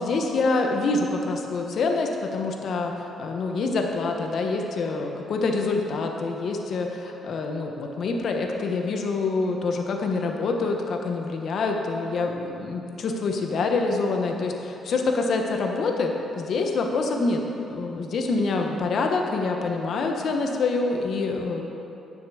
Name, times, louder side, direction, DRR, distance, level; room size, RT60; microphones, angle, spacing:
voice 1, 0.0-2.9 3.2-17.4 17.7-21.6, left 3 dB, 60° left, 2 dB, 1.2 m, -26 dB
10.5 x 6.7 x 7.0 m, 2.8 s
cardioid pair, 90°, 0 cm